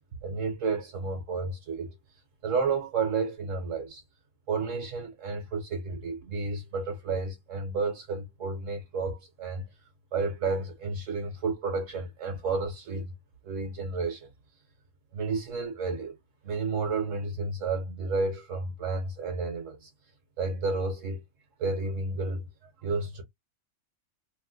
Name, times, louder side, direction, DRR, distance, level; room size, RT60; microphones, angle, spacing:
voice 1, 0.2-1.9 2.4-4.0 4.5-9.6 10.1-13.1 13.4-14.3 15.1-16.2 16.4-19.9 20.4-21.2 21.6-23.2, right 4 dB, 65° right, 1.1 m, -31 dB
2.9 x 2.1 x 3.6 m
omnidirectional pair, 1.5 m